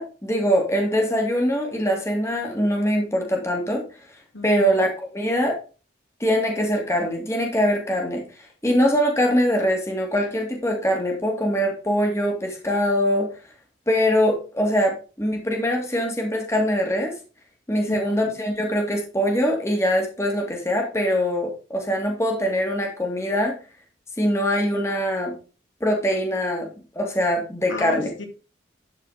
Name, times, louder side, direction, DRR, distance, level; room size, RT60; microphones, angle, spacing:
voice 1, 0.0-3.8 4.4-5.6 6.2-8.2 8.6-13.3 13.9-17.1 17.7-23.6 24.2-25.4 25.8-26.7 27.0-28.1, equal, 15° left, 1 dB, 2.3 m, -23 dB
voice 2, 4.3-4.8 17.8-18.2 27.7-28.3, left 2 dB, 85° left, 4 dB, 2.2 m, -36 dB
12.0 x 4.8 x 5.0 m, 0.34 s
head